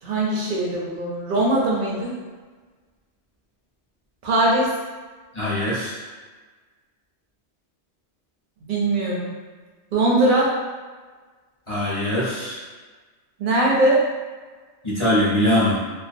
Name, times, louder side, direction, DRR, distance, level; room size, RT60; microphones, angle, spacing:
voice 1, 0.0-2.1 4.2-4.7 8.6-9.3 9.9-10.5 13.4-14.0, right 2 dB, 55° right, -4 dB, 0.6 m, -20 dB
voice 2, 5.3-5.9 11.7-12.6 14.8-15.8, left 1 dB, 30° left, -10 dB, 0.6 m, -22 dB
2.3 x 2.2 x 2.5 m, 1.4 s
omnidirectional pair, 1.2 m